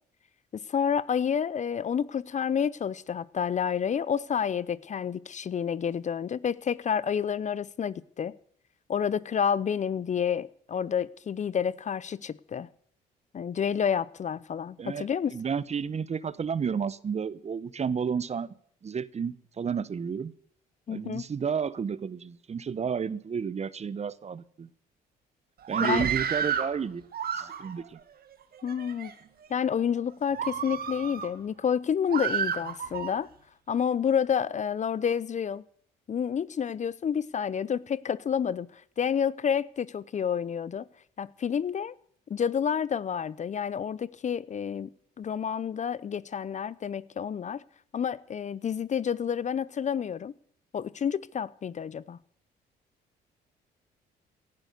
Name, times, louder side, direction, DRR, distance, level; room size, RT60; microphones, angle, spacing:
voice 1, 0.5-8.4 8.9-12.7 13.3-15.4 20.9-21.3 25.8-26.0 28.6-29.1 29.5-33.3 33.7-35.6 36.1-40.8 41.2-41.9 42.3-44.9 45.2-47.6 47.9-50.3 50.7-52.2, left 7 dB, 40° left, 0.6 m, -29 dB
voice 2, 14.8-18.5 18.8-20.3 20.9-24.7 25.7-27.0 27.3-28.0, right 6 dB, 35° right, 0.9 m, -31 dB
Screaming, 25.6-26.7 27.1-27.9 28.5-29.1 29.6-29.8 30.3-31.3 32.1-33.1, right 7 dB, 55° right, 1.9 m, -31 dB
17.5 x 10.5 x 6.7 m
supercardioid pair, 65°, 19 cm